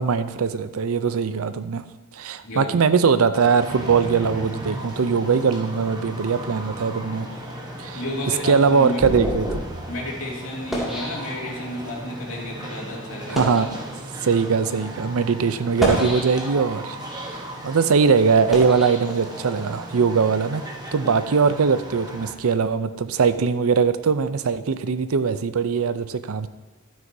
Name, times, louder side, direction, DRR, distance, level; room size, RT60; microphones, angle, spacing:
voice 1, 0.0-1.8 2.1-7.3 7.8-8.0 8.4-9.7 13.3-13.8 14.2-20.6 20.9-26.5, right 5 dB, 85° right, 12 dB, 0.5 m, -21 dB
sound 1, 3.3-22.3, right 1 dB, 20° right, 1.1 m, -36 dB
voice 2, 7.9-9.3 9.9-13.7, left 1 dB, 75° left, -3 dB, 2.4 m, -32 dB
sound 2, 8.1-11.8 12.5-12.7 13.2-13.7 14.5-14.7 15.6-16.7 17.2-19.7, equal, ahead, 2.2 m, -30 dB
12.0 x 9.4 x 2.7 m, 1.2 s
head